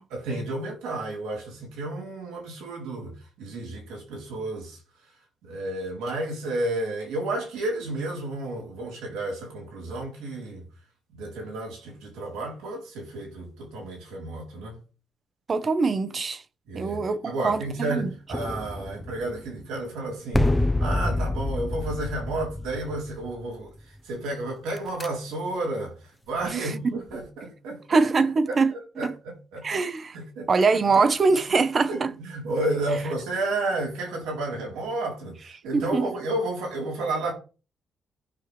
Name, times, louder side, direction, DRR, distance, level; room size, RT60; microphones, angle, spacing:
voice 1, 0.1-4.8 5.4-10.6 11.1-14.8 16.7-28.0 28.5-29.7 30.1-30.5 30.8-30.9 31.3-31.6 31.9-37.3, right 2 dB, 90° right, 3.9 m, -32 dB
voice 2, 15.5-16.4 16.7-18.1 26.6-26.7 27.9-28.7 29.0-29.1 29.6-30.2 30.5-32.1 35.7-36.1, right 4 dB, 45° right, 1.1 m, -23 dB
sound 1, 18.3-19.6 20.3-23.6 24.8-25.1, left 1 dB, 10° left, 0.9 m, -27 dB
15.0 x 5.8 x 3.5 m
supercardioid pair, 65°, 0 cm